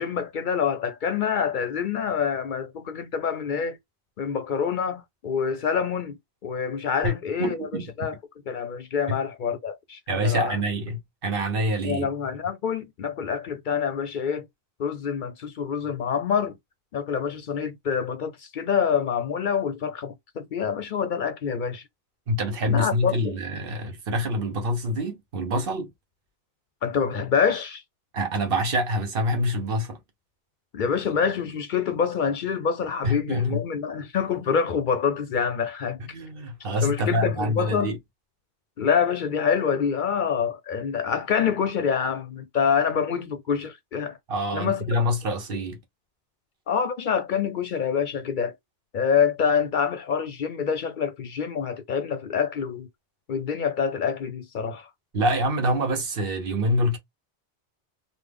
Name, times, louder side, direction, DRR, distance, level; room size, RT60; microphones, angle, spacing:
voice 1, 0.0-3.8 4.2-7.7 8.0-8.2 8.5-10.6 11.8-14.5 14.8-16.6 16.9-21.8 22.6-23.4 26.8-27.8 30.7-36.0 36.8-37.9 38.8-44.2 44.5-44.9 46.7-48.6 48.9-52.9 53.3-54.9, left 7 dB, 60° left, 0.6 m, -26 dB
voice 2, 7.4-8.1 9.1-9.2 10.1-12.1 22.3-25.9 28.1-30.0 33.0-33.6 36.0-38.0 44.3-45.8 55.1-57.0, equal, 65° right, 1.1 m, -26 dB
3.3 x 2.1 x 3.5 m
omnidirectional pair, 1.0 m